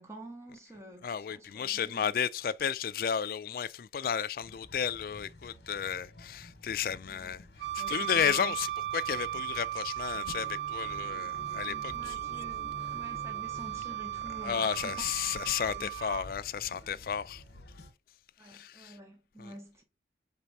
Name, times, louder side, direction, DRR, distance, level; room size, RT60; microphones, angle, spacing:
voice 1, 0.0-2.1 7.1-7.3 7.8-8.6 11.9-15.0 15.7-15.9 18.4-19.8, right 1 dB, 15° right, 1.1 m, -48 dB
voice 2, 1.0-7.4 7.7-8.7 8.9-12.1 14.4-17.4 18.5-18.9 19.4-19.5, left 8 dB, 55° left, 0.3 m, -33 dB
sound 1, 4.4-17.9, left 1 dB, 70° left, 1.0 m, -50 dB
Wind instrument woodwind instrument, 7.6-16.3, right 13 dB, 80° right, 0.6 m, -36 dB
4.5 x 4.1 x 5.3 m
head